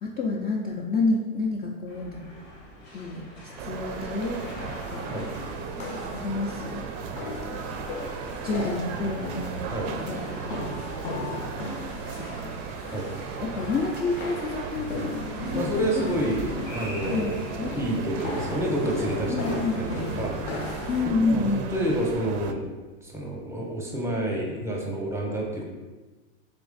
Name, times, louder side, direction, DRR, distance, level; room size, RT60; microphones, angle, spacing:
voice 1, 0.0-2.3 2.9-3.2 3.6-5.1 6.1-6.8 7.5-7.9 8.4-9.6 10.1-10.6 12.2-12.5 13.4-15.9 17.1-17.8 19.3-19.8 20.9-21.9, left 3 dB, 25° left, -3 dB, 0.4 m, -29 dB
sound 1, 1.9-20.9, left 1 dB, 85° left, 1.3 m, -44 dB
sound 2, 3.6-22.5, right 6 dB, 50° right, 0.4 m, -36 dB
sound 3, 4.5-21.1, left 3 dB, 55° left, 0.7 m, -37 dB
voice 2, 15.5-17.3 17.7-20.4 21.3-21.4 21.7-22.7 23.0-25.6, right 1 dB, 5° right, -1 dB, 0.7 m, -29 dB
3.4 x 3.1 x 3.8 m, 1.2 s
hypercardioid pair, 105°, 36 cm